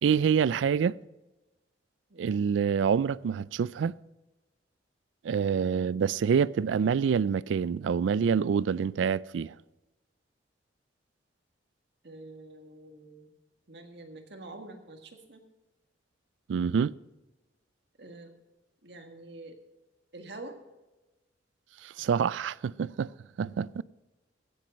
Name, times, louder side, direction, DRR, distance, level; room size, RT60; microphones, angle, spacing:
voice 1, 0.0-1.0 2.2-3.9 5.2-9.5 16.5-16.9 21.8-23.1 23.4-23.8, right 7 dB, 85° right, 0.3 m, -26 dB
voice 2, 2.1-2.5 12.0-13.3 13.7-15.4 18.0-18.3 18.8-19.6 20.1-20.6, right 2 dB, 65° right, 1.7 m, -46 dB
15.5 x 7.6 x 5.3 m
head